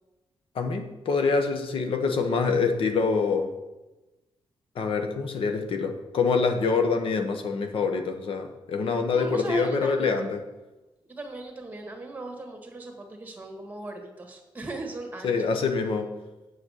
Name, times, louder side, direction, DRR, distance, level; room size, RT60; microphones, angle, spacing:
voice 1, 0.5-3.5 4.7-10.4 15.2-16.1, left 4 dB, 80° left, 6 dB, 1.1 m, -25 dB
voice 2, 9.1-10.4 11.1-15.5, right 2 dB, 20° right, 3 dB, 1.7 m, -38 dB
8.4 x 7.4 x 6.5 m, 1.1 s
wide cardioid pair, 160°, 9 cm